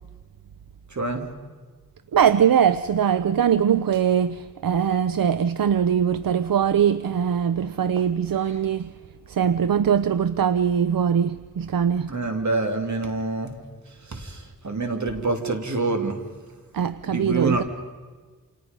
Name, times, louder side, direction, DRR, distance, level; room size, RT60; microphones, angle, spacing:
voice 1, 0.9-1.2 12.1-13.6 14.1-16.2 17.1-17.6, right 3 dB, 60° right, 2.8 m, -26 dB
voice 2, 2.1-8.9 9.3-12.1 16.7-17.6, right 8 dB, 85° right, 0.6 m, -21 dB
29.0 x 26.5 x 5.3 m
wide cardioid pair, 85°, 33 cm